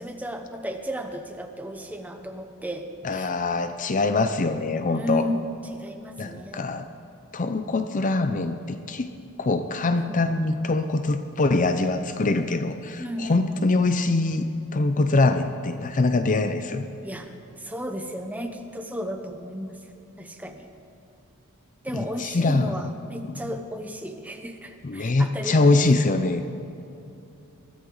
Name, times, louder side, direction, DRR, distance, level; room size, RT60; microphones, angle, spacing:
voice 1, 0.0-2.9 3.1-3.3 4.9-6.7 9.9-10.2 13.0-13.7 17.0-17.3 17.6-19.9 20.2-20.7 21.8-25.8, equal, 5° right, 5 dB, 0.9 m, -34 dB
voice 2, 3.0-5.3 6.2-6.9 7.3-9.1 9.4-16.8 21.9-22.7 24.8-26.5, left 3 dB, 35° left, 9 dB, 0.5 m, -23 dB
21.5 x 13.5 x 3.9 m, 2.9 s
head